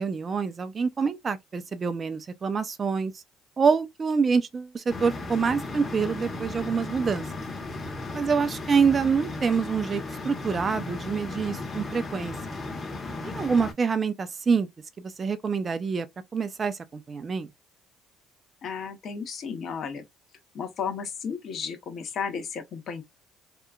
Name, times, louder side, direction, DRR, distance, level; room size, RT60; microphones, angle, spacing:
voice 1, 0.0-3.1 3.6-7.2 8.1-12.6 13.2-14.7 15.0-16.1 16.3-17.5, right 5 dB, 35° right, 0.4 m, -26 dB
sound 1, 4.9-13.7, left 2 dB, 30° left, 1.0 m, -35 dB
voice 2, 18.6-20.0 20.5-23.0, left 6 dB, 55° left, 0.9 m, -33 dB
2.8 x 2.3 x 2.3 m
supercardioid pair, 75°, 0 cm